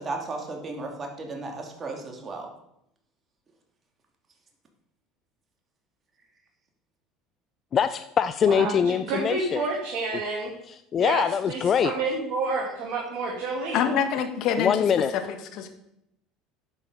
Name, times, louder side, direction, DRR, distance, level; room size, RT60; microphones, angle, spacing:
voice 1, 0.0-2.5, right 3 dB, 30° right, 2 dB, 2.6 m, -35 dB
voice 2, 7.7-9.6 10.9-11.9 14.6-15.1, left 7 dB, 40° left, 12 dB, 0.4 m, -23 dB
voice 3, 8.4-10.5 11.0-13.8, right 3 dB, 50° right, -2 dB, 2.3 m, -29 dB
voice 4, 13.7-14.7 15.1-15.7, left 8 dB, 55° left, 8 dB, 1.4 m, -26 dB
9.9 x 7.3 x 5.0 m, 0.79 s
figure-of-eight pair, 70°, 0 cm